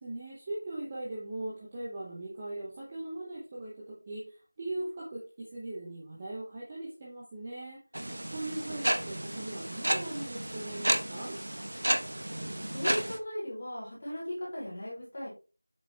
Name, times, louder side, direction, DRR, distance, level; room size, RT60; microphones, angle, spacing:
voice 1, 0.0-7.8 8.3-11.4, right 2 dB, 10° right, -5 dB, 0.7 m, -39 dB
sound 1, 7.9-13.2, right 1 dB, 50° right, 0.9 m, -32 dB
voice 2, 12.2-15.3, left 1 dB, 20° left, -7 dB, 3.1 m, -37 dB
7.7 x 5.6 x 3.2 m, 0.33 s
figure-of-eight pair, 180°, 0 cm